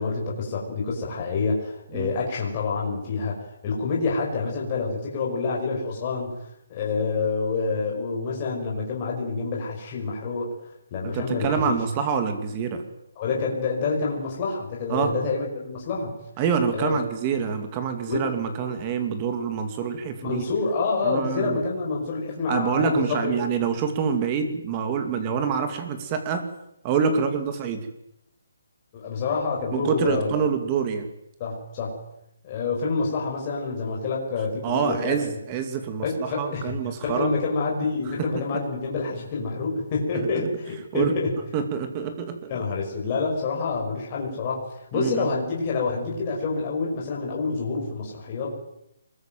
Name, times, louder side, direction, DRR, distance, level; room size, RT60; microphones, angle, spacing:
voice 1, 0.0-6.3 6.7-10.5 10.9-11.8 13.2-16.2 16.7-17.0 18.0-18.2 20.2-23.4 28.9-30.3 31.4-32.0 32.4-35.4 36.0-36.8 37.0-41.3 42.5-48.6, left 4 dB, 20° left, -2 dB, 5.3 m, -27 dB
voice 2, 11.0-12.8 14.9-15.1 16.4-20.4 21.0-21.6 22.5-26.5 26.8-27.9 29.7-31.1 34.6-37.3 38.2-38.6 40.1-40.5 40.9-41.2 41.5-42.5 44.9-45.3, right 6 dB, 15° right, 7 dB, 2.4 m, -26 dB
25.0 x 21.5 x 9.2 m, 0.80 s
hypercardioid pair, 180°, 0 cm